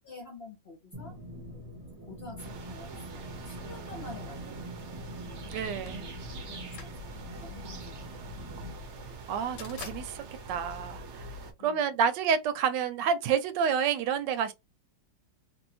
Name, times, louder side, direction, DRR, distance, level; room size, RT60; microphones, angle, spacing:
voice 1, 0.0-1.2 2.0-4.9 6.4-8.0 8.4-8.7 11.6-12.0, left 3 dB, 50° left, 0.8 m, -48 dB
sound 1, 0.9-8.7, right 1 dB, 15° right, 0.9 m, -44 dB
sound 2, 2.4-11.5, right 2 dB, 55° right, 0.8 m, -44 dB
sound 3, 5.5-11.7, left 5 dB, 90° left, 1.6 m, -49 dB
voice 2, 5.5-6.0 9.3-10.2 10.5-14.5, right 7 dB, 85° right, 1.2 m, -29 dB
2.9 x 2.7 x 2.7 m
omnidirectional pair, 1.9 m